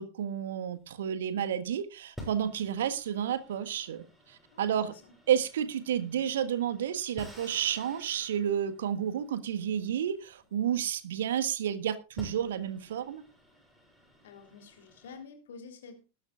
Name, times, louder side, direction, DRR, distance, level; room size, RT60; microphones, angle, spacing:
voice 1, 0.0-4.9 5.3-13.2, right 9 dB, 60° right, 1.5 m, -31 dB
sound 1, 0.7-1.5 2.2-11.3 11.8-11.9 12.2-15.2, equal, ahead, 7.2 m, -52 dB
voice 2, 4.5-5.1 14.2-16.1, left 5 dB, 60° left, 3.5 m, -49 dB
20.0 x 11.5 x 2.4 m
figure-of-eight pair, 90°, 0 cm